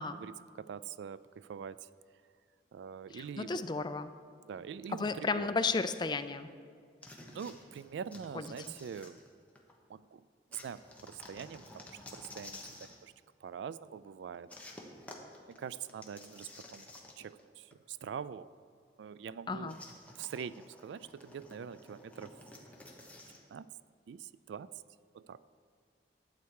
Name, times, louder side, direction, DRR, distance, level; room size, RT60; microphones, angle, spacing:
voice 1, 0.0-1.9 2.7-3.6 4.5-5.5 7.3-9.2 9.9-10.2 10.5-13.1 13.4-14.5 15.5-16.9 17.2-18.5 19.0-19.8 20.2-22.4 23.5-23.7 24.1-24.7 25.1-25.4, right 7 dB, 70° right, 17 dB, 0.3 m, -44 dB
voice 2, 3.1-4.1 4.9-6.5 8.3-8.5 19.5-19.8, left 4 dB, 25° left, 11 dB, 0.4 m, -33 dB
Item Rolling Plastic, 7.0-9.7 10.5-13.0 14.5-17.4 17.7-17.8 19.7-23.4, left 2 dB, 10° left, 1.0 m, -52 dB
11.5 x 8.2 x 4.7 m, 2.2 s
head